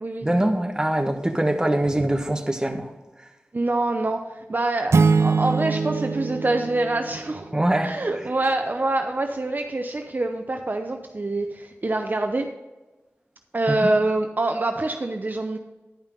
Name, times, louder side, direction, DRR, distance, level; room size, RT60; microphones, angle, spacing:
voice 1, 0.2-2.9 7.5-7.9 13.7-13.8, right 1 dB, 15° right, 4 dB, 1.1 m, -23 dB
voice 2, 3.5-7.5 7.8-12.5 13.5-15.6, right 2 dB, 45° right, 5 dB, 0.6 m, -25 dB
sound 1, 4.9-7.7, right 4 dB, 85° right, 0.4 m, -23 dB
10.5 x 5.5 x 5.3 m, 1.1 s
wide cardioid pair, 65°, 4 cm